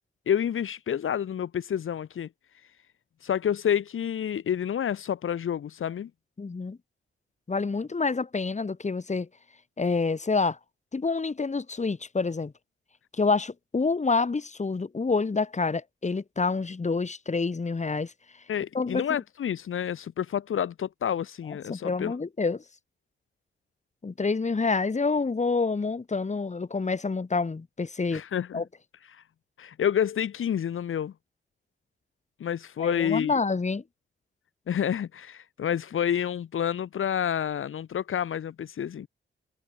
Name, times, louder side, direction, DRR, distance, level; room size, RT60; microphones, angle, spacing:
voice 1, 0.3-2.3 3.2-6.1 18.5-22.1 28.1-28.6 29.1-29.2 29.6-31.1 32.4-33.4 34.7-39.1, left 9 dB, 75° left, 1.5 m, -29 dB
voice 2, 6.4-6.8 7.5-9.3 9.8-10.6 10.9-12.5 13.1-18.1 18.7-19.0 21.5-22.6 24.0-28.2 28.5-28.6 32.8-33.8, left 4 dB, 35° left, 3.8 m, -27 dB
cardioid pair, 95°, 21 cm